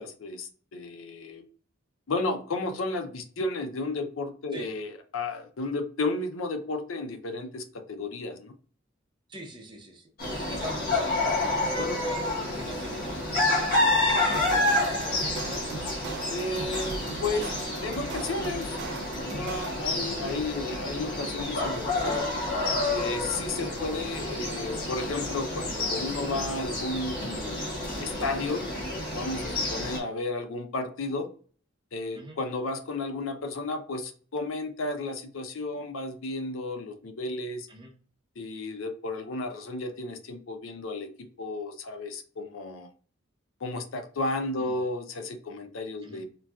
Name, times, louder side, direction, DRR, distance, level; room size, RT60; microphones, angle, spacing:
voice 1, 0.0-1.4 2.1-8.5 11.8-12.0 16.3-17.5 17.8-18.8 19.2-22.2 22.9-27.6 28.0-28.6 29.1-31.3 31.9-37.7 38.4-41.1 41.4-42.9 43.6-46.2, left 2 dB, 90° left, 7 dB, 0.5 m, -33 dB
voice 2, 9.3-10.1 10.5-13.7 14.1-16.0 23.7-23.9 28.1-28.3 29.5-29.7 32.1-32.4 37.7-37.9 44.6-44.8 46.0-46.2, right 1 dB, 25° right, 1 dB, 0.6 m, -43 dB
sound 1, 10.2-30.0, left 2 dB, 50° left, 1.3 m, -29 dB
sound 2, 14.3-20.0, right 4 dB, 60° right, 0.3 m, -40 dB
3.8 x 2.3 x 2.3 m, 0.43 s
head